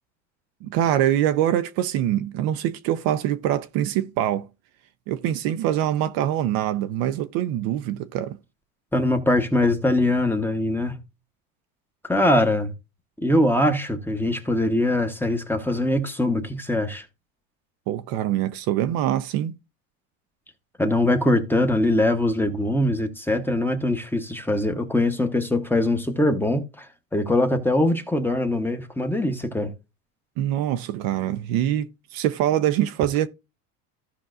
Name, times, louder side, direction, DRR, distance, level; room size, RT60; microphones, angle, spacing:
voice 1, 0.6-4.5 5.1-8.4 17.9-19.6 30.4-33.3, right 12 dB, 55° right, 0.6 m, -24 dB
voice 2, 8.9-10.9 12.1-12.7 13.2-17.0 20.8-29.7, left 1 dB, 5° left, 1.0 m, -22 dB
15.0 x 5.3 x 2.5 m
supercardioid pair, 120°, 43 cm